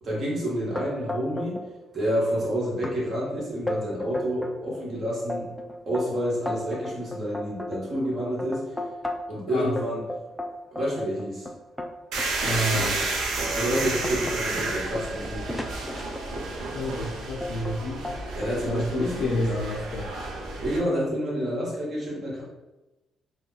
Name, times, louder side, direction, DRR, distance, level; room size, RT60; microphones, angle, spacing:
voice 1, 0.0-1.6 1.9-5.5 5.9-8.6 9.3-10.0 10.7-11.5 13.5-15.5 18.4-19.4 20.6-22.4, equal, 50° right, -5 dB, 1.2 m, -29 dB
sound 1, 0.7-1.7 1.9-2.5 2.8-3.0 3.4-4.6 5.0-9.4 9.8-12.3 12.9-13.1 13.5-16.6 17.4-17.8 18.0-18.8, left 1 dB, 5° left, 0.3 m, -34 dB
sound 2, 12.1-20.8, right 2 dB, 80° right, 0.5 m, -31 dB
voice 2, 12.4-13.0 16.7-18.0 18.7-20.1, left 1 dB, 75° left, -3 dB, 0.4 m, -29 dB
2.3 x 2.1 x 3.7 m, 1.0 s
cardioid pair, 90°, 0 cm